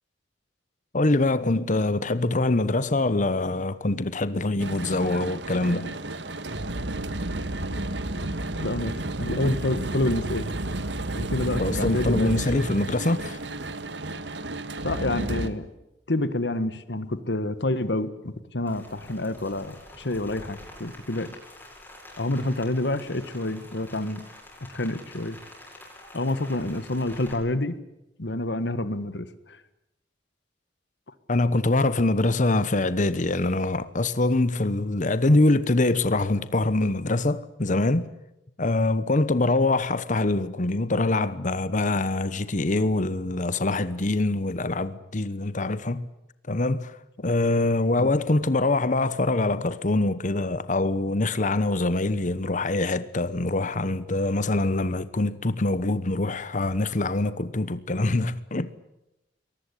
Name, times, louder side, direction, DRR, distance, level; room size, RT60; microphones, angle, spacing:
voice 1, 0.9-5.9 9.4-9.6 11.6-13.4 31.3-38.1 38.6-46.1 46.5-58.7, left 2 dB, 45° left, 1.0 m, -24 dB
sound 1, 4.6-15.5, right 2 dB, 70° right, 1.7 m, -31 dB
voice 2, 8.5-8.9 9.2-10.5 11.1-12.6 14.8-15.7 16.1-18.1 18.5-21.3 22.2-24.2 24.7-25.4 26.1-27.7 28.2-29.3 48.0-48.1, left 1 dB, 65° left, 1.5 m, -28 dB
Rain, 18.7-27.3, left 1 dB, 10° left, 7.9 m, -47 dB
22.5 x 19.0 x 9.9 m
head